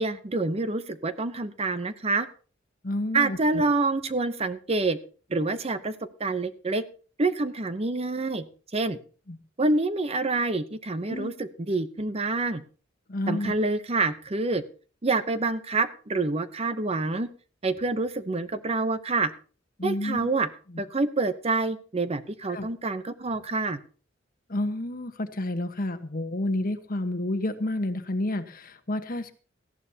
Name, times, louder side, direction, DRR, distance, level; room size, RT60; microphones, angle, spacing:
voice 1, 0.0-2.3 3.1-5.0 5.3-5.9 6.2-6.8 7.2-8.4 8.7-9.0 9.6-12.6 13.3-14.6 15.0-17.3 17.6-19.3 19.8-20.5 20.8-23.8, right 3 dB, 30° right, 12 dB, 0.8 m, -27 dB
voice 2, 2.8-3.6 9.3-9.4 11.1-11.3 13.1-13.5 19.8-20.2 20.7-20.8 22.5-22.7 24.5-29.3, left 1 dB, 50° left, 9 dB, 1.3 m, -30 dB
18.0 x 14.5 x 2.8 m, 0.37 s
head